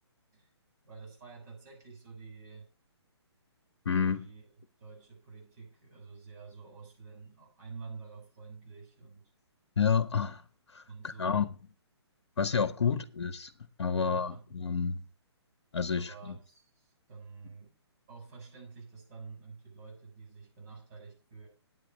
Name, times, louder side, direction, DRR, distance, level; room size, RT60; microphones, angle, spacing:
voice 1, 0.8-2.7 4.1-4.5 4.8-9.3 10.9-11.4 12.8-12.9 14.0-14.4 15.9-17.8 18.1-21.5, right 4 dB, 40° right, 7.0 m, -48 dB
voice 2, 3.8-4.3 9.8-10.4 10.7-11.4 12.4-13.5 13.8-15.0 15.7-16.4, left 6 dB, 65° left, 0.9 m, -29 dB
9.5 x 7.7 x 6.4 m
figure-of-eight pair, 130°, 14 cm